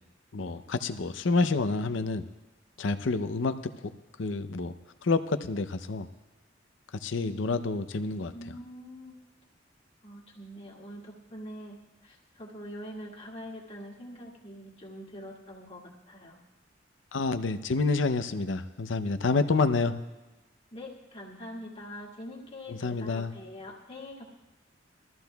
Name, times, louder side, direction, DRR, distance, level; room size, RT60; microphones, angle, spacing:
voice 1, 0.3-2.2 2.8-3.5 4.2-4.7 5.0-6.1 7.0-8.3 17.1-19.9 22.7-23.3, left 3 dB, 85° left, 10 dB, 0.6 m, -28 dB
voice 2, 8.3-9.2 10.0-16.4 20.7-24.2, equal, 35° left, -2 dB, 1.8 m, -44 dB
21.5 x 13.5 x 2.3 m, 1.1 s
head